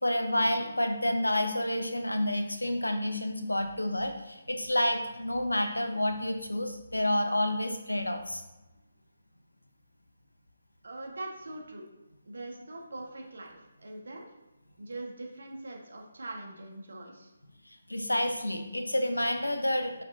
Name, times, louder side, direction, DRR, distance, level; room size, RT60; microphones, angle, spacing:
voice 1, 0.0-8.4 17.9-20.0, left 1 dB, 90° left, 6 dB, 0.8 m, -29 dB
voice 2, 10.8-11.9 12.2-14.3 14.8-17.3, right 2 dB, 70° right, 0 dB, 1.6 m, -42 dB
5.9 x 5.8 x 2.8 m, 1.1 s
figure-of-eight pair, 145°, 0 cm